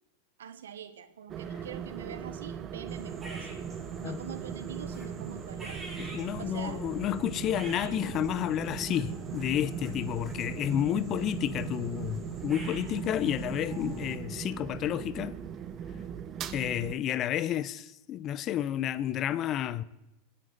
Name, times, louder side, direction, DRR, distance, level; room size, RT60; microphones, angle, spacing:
voice 1, 0.4-3.6 4.0-5.9 6.4-6.8 16.8-17.0, right 8 dB, 85° right, 1.1 m, -44 dB
sound 1, 1.3-16.9, right 8 dB, 35° right, 0.9 m, -39 dB
sound 2, 2.9-14.2, right 2 dB, 20° right, 6.5 m, -44 dB
voice 2, 6.0-15.4 16.5-19.8, left 11 dB, 40° left, 0.7 m, -31 dB
25.5 x 9.9 x 4.1 m
hypercardioid pair, 105°, 0 cm